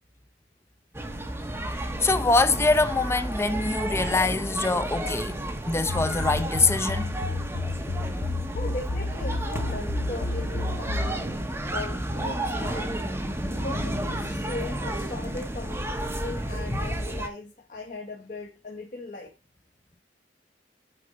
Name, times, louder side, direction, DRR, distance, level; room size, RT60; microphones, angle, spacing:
sound 1, 0.9-17.3, right 1 dB, 15° right, 1.2 m, -31 dB
voice 1, 2.0-5.3 5.7-7.1 16.7-16.8, left 3 dB, 15° left, 0.5 m, -24 dB
sound 2, 5.9-11.2, left 3 dB, 75° left, 0.5 m, -31 dB
voice 2, 8.5-13.1 13.5-15.9 16.2-19.3, left 2 dB, 45° left, 1.4 m, -39 dB
6.7 x 5.3 x 5.0 m
head